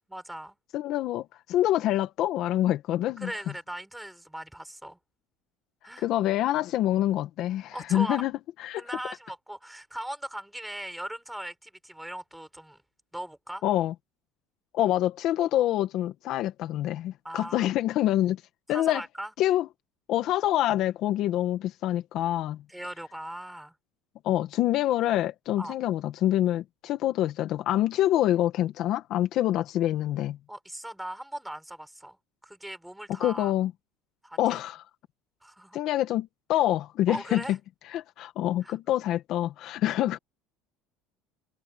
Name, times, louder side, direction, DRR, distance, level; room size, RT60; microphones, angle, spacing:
voice 1, 0.1-0.6 3.2-5.0 5.8-6.1 7.7-8.3 8.7-12.8 13.1-13.6 17.2-17.8 18.7-19.3 22.7-23.7 25.6-25.7 30.5-32.2 32.4-33.5 34.2-34.6 35.4-35.8 37.1-37.6 38.6-38.8, right 1 dB, 5° right, 6.5 m, -39 dB
voice 2, 0.7-3.3 6.0-8.3 8.6-8.8 13.6-13.9 14.7-18.4 18.7-19.0 19.4-19.7 20.1-22.6 24.2-30.4 33.2-33.7 34.4-34.8 35.7-37.6 37.9-40.2, left 13 dB, 55° left, 1.7 m, -26 dB
cardioid pair, 135°, 0 cm